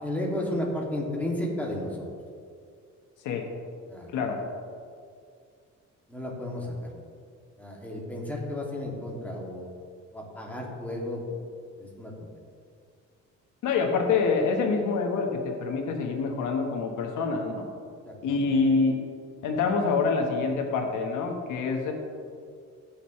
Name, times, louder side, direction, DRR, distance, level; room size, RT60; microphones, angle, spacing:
voice 1, 0.0-2.1 3.9-4.1 6.1-6.9 7.6-9.7 10.1-11.2 11.8-12.3 18.1-18.5, left 1 dB, 5° left, -3 dB, 2.5 m, -33 dB
voice 2, 13.6-17.7 18.2-19.0 19.4-21.9, left 4 dB, 90° left, 3 dB, 1.5 m, -26 dB
16.0 x 6.6 x 3.2 m, 2.2 s
cardioid pair, 90°, 30 cm